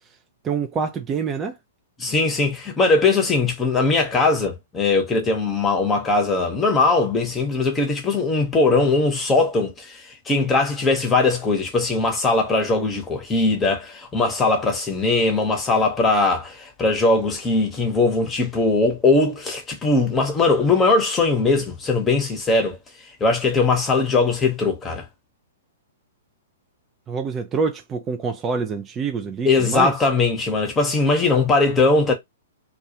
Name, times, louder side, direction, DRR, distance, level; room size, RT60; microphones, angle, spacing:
voice 1, 0.4-1.6 27.1-29.9, right 5 dB, 20° right, 0.4 m, -26 dB
voice 2, 2.0-22.8 23.2-25.0 29.4-32.1, left 3 dB, 15° left, 0.9 m, -20 dB
2.3 x 2.3 x 2.8 m
figure-of-eight pair, 115°, 0 cm